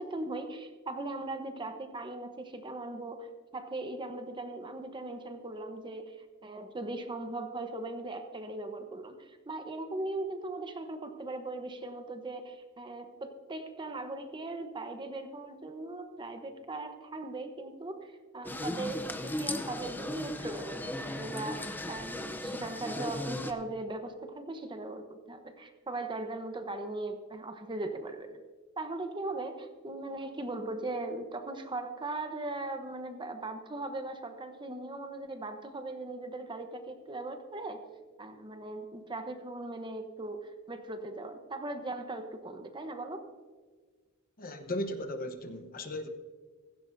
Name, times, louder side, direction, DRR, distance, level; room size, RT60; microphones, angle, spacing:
voice 1, 0.0-3.3 3.5-6.1 6.4-28.4 28.8-37.8 38.2-43.2, right 2 dB, 20° right, 6 dB, 1.0 m, -39 dB
sound 1, 18.4-23.5, left 1 dB, 10° left, 0.6 m, -37 dB
voice 2, 44.4-46.1, left 1 dB, 40° left, 6 dB, 1.0 m, -36 dB
16.0 x 15.5 x 2.7 m, 1.4 s
head